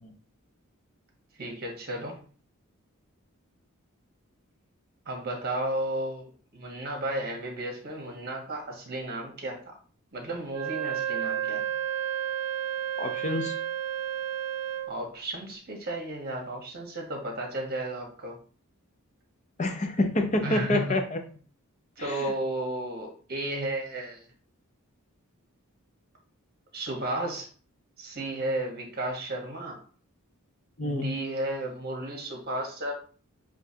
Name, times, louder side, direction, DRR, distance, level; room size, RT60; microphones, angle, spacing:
voice 1, 1.4-2.2 5.0-9.8 10.1-11.6 14.9-18.4 20.4-21.0 22.0-24.3 26.7-27.5 28.0-29.8 30.8-32.9, right 1 dB, 45° right, 0 dB, 1.3 m, -33 dB
Wind instrument woodwind instrument, 10.5-15.0, right 10 dB, 75° right, 0.7 m, -31 dB
voice 2, 13.0-13.6 19.6-21.2 22.0-22.2 30.8-31.1, left 2 dB, 35° left, 5 dB, 0.6 m, -27 dB
6.7 x 2.5 x 2.8 m, 0.41 s
head